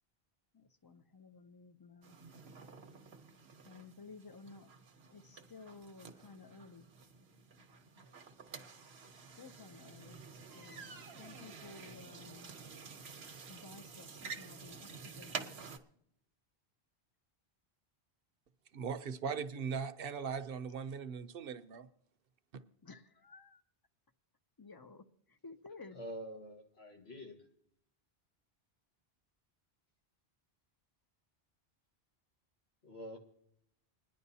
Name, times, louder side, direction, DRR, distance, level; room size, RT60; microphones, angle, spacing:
voice 1, 0.5-2.2 3.6-4.7 5.1-6.9 9.2-10.2 10.5-12.6 13.5-15.5 22.8-23.6 24.6-26.0, left 4 dB, 30° left, 9 dB, 0.4 m, -54 dB
sound 1, 2.0-15.8, right 5 dB, 80° right, 1.2 m, -50 dB
voice 2, 18.7-21.9, right 6 dB, 65° right, 11 dB, 0.8 m, -39 dB
voice 3, 26.0-27.4 32.8-33.3, equal, 75° left, 2 dB, 1.9 m, -46 dB
29.5 x 10.5 x 2.7 m, 0.75 s
omnidirectional pair, 1.1 m